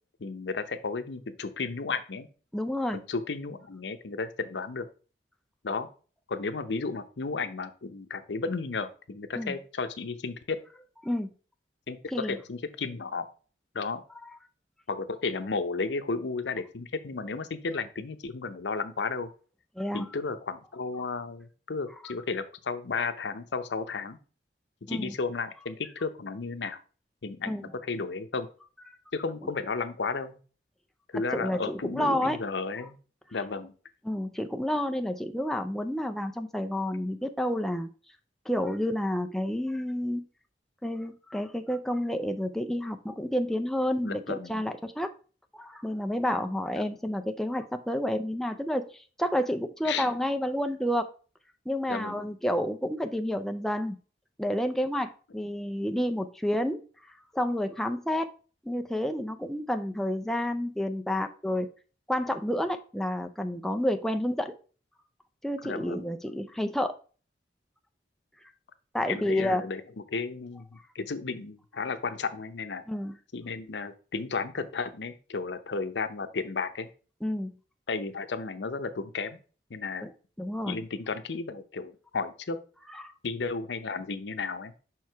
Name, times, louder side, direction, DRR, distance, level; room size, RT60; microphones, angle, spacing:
voice 1, 0.2-2.3 2.9-4.9 5.6-5.9 6.3-10.6 11.9-13.3 13.7-14.0 14.9-19.3 19.9-24.2 24.9-26.8 27.2-28.5 29.1-30.4 31.1-32.9 33.3-33.7 44.0-44.6 46.8-46.9 49.8-50.1 51.9-52.2 65.6-66.1 69.1-69.8 70.1-72.8 73.3-76.9 77.9-79.4 79.7-80.0 80.7-82.6 83.2-84.7, left 4 dB, 85° left, 11 dB, 0.7 m, -33 dB
voice 2, 2.5-3.0 9.4-9.5 11.0-11.3 12.1-12.4 19.8-20.1 24.9-25.1 27.5-27.6 31.1-32.4 34.0-37.9 38.5-40.2 40.8-45.1 45.5-51.1 51.7-54.0 54.4-56.8 57.3-58.3 58.6-61.7 62.1-64.5 65.4-67.0 68.9-69.6 72.9-73.1 77.2-77.5 80.0-80.1 80.4-80.8 82.9-83.1, left 1 dB, ahead, 6 dB, 0.4 m, -30 dB
5.6 x 4.7 x 4.5 m, 0.38 s
head